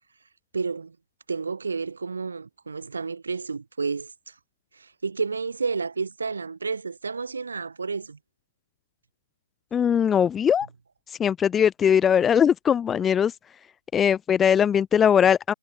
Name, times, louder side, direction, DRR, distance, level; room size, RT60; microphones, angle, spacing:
voice 1, 0.5-1.0 1.3-4.3 4.7-8.2, right 4 dB, 45° right, 2.7 m, -31 dB
voice 2, 9.7-10.7 11.1-13.3 13.9-15.5, left 8 dB, 5° left, 0.5 m, -20 dB
figure-of-eight pair, 170°, 0 cm